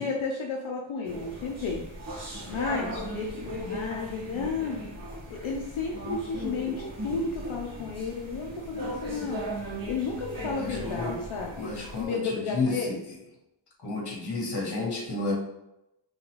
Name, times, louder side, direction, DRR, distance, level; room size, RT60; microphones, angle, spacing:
voice 1, 0.0-1.9 2.5-4.8 5.3-13.0, left 4 dB, 85° left, 0 dB, 0.7 m, -33 dB
sound 1, 1.0-12.0, equal, 45° right, 1.4 m, -37 dB
voice 2, 10.5-11.1 11.6-12.7 13.8-15.3, left 3 dB, 55° left, -2 dB, 1.4 m, -31 dB
3.9 x 3.5 x 3.0 m, 0.88 s
wide cardioid pair, 110°, 47 cm